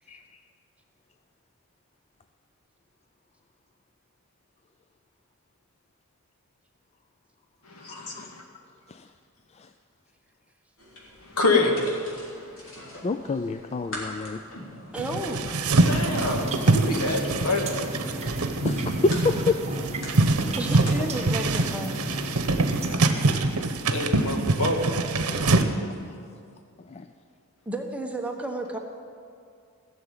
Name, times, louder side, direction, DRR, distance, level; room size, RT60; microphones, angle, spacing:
voice 1, 0.1-0.4 7.8-8.3 8.9-9.1 9.5-9.7 13.0-14.4 18.6-19.6 25.3-26.2 26.8-27.1, left 3 dB, 30° left, 8 dB, 0.3 m, -29 dB
voice 2, 7.7-8.4 11.3-11.8 15.9-17.7 20.7-20.8 23.9-24.9, left 2 dB, 80° left, 2 dB, 2.0 m, -26 dB
sound 1, 10.8-21.8, left 1 dB, 65° left, 3.2 m, -44 dB
voice 3, 14.9-15.5 20.6-22.0 27.7-28.8, right 1 dB, 5° right, 2 dB, 1.0 m, -32 dB
sound 2, 15.0-25.6, right 2 dB, 75° right, 0.9 m, -24 dB
sound 3, 15.7-23.0, right 1 dB, 30° right, 1.4 m, -34 dB
16.0 x 7.0 x 8.8 m, 2.3 s
head